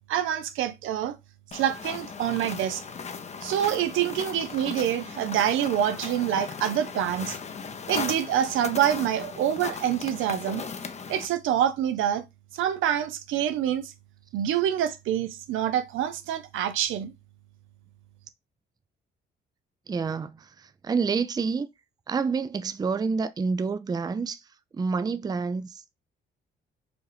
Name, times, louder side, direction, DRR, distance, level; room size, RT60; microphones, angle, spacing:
voice 1, 0.1-1.2 1.5-2.8 3.4-7.4 7.9-10.6 11.1-12.2 12.5-13.9 14.3-17.1, right 10 dB, 85° right, 0.6 m, -26 dB
sound 1, 1.5-11.3, left 5 dB, 35° left, 0.6 m, -37 dB
voice 2, 19.9-21.7 22.1-24.4 24.7-26.0, right 5 dB, 20° right, 0.4 m, -28 dB
4.8 x 2.5 x 3.4 m
cardioid pair, 90°, 20 cm